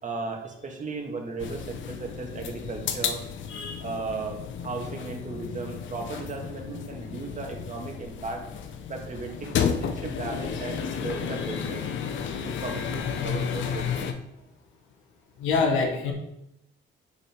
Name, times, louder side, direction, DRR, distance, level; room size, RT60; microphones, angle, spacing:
voice 1, 0.0-3.2 3.8-8.4 8.9-11.8 12.4-14.1, right 3 dB, 40° right, 1 dB, 1.7 m, -36 dB
sound 1, 1.4-14.1, left 7 dB, 70° left, 0.8 m, -32 dB
voice 2, 3.5-3.8 8.8-8.9 15.4-16.1, left 4 dB, 90° left, 3 dB, 1.4 m, -26 dB
7.0 x 5.5 x 4.5 m, 0.83 s
cardioid pair, 90°, 20 cm